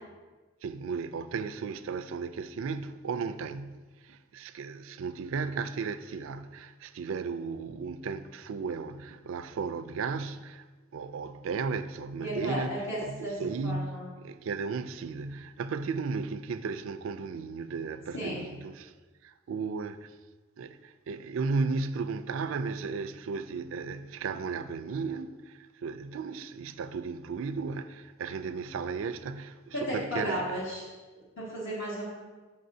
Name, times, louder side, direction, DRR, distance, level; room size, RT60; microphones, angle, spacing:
voice 1, 0.6-10.7 10.9-18.9 19.2-20.2 20.6-30.6, right 4 dB, 80° right, 0.3 m, -35 dB
voice 2, 12.2-14.1 18.1-18.4 29.7-30.8 31.4-32.1, equal, 60° left, 1.4 m, -34 dB
7.7 x 5.4 x 2.6 m
head